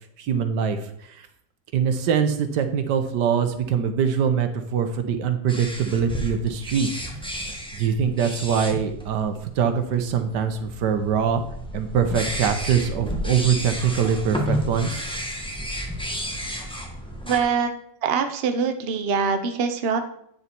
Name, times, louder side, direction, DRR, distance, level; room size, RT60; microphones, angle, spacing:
voice 1, 0.2-1.3 1.7-6.9 7.7-11.4 11.7-15.1, right 7 dB, 75° right, 8 dB, 1.5 m, -23 dB
sound 1, 5.5-17.4, equal, 5° left, 1.2 m, -32 dB
voice 2, 17.2-17.7 18.0-20.0, right 6 dB, 45° right, 7 dB, 0.9 m, -23 dB
9.2 x 7.0 x 4.5 m, 0.71 s
omnidirectional pair, 1.9 m